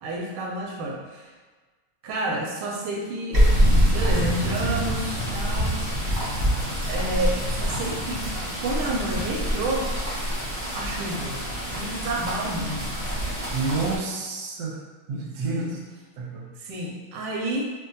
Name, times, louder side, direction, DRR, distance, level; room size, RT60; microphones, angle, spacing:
voice 1, 0.0-1.3 2.0-3.5 3.9-5.8 6.9-8.3 8.6-9.9 10.7-11.4 11.7-12.9 15.5-15.7 16.6-17.7, right 1 dB, 90° right, -1 dB, 1.5 m, -30 dB
sound 1, 3.3-14.0, equal, 45° right, 0.7 m, -25 dB
voice 2, 13.5-14.8 15.1-15.8 16.2-16.5, right 3 dB, 70° right, -2 dB, 0.9 m, -29 dB
3.6 x 2.2 x 2.6 m, 1.3 s
omnidirectional pair, 2.3 m